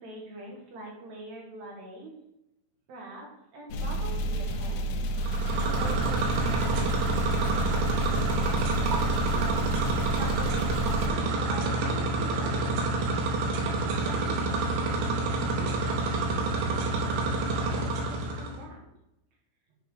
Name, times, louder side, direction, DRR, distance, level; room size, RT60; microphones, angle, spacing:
voice 1, 0.0-2.1 2.9-3.3 3.5-5.0 5.6-9.6 10.1-11.2 11.5-13.0 13.6-13.8 14.0-18.9, right 1 dB, 55° right, -2 dB, 2.3 m, -43 dB
sound 1, 3.7-11.1, right 1 dB, 80° left, 2.4 m, -30 dB
sound 2, 5.2-18.6, right 2 dB, 85° right, 2.9 m, -28 dB
7.9 x 5.6 x 3.7 m, 0.85 s
omnidirectional pair, 4.7 m